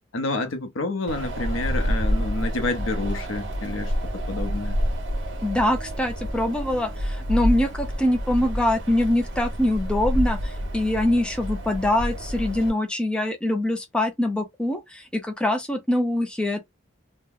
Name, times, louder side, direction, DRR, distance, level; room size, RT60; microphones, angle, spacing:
voice 1, 0.1-4.8, left 2 dB, 70° left, 0.7 m, -29 dB
Wind, 1.1-12.7, equal, 60° right, 1.0 m, -28 dB
voice 2, 5.4-16.6, left 1 dB, 5° left, 0.5 m, -24 dB
2.8 x 2.1 x 3.7 m
head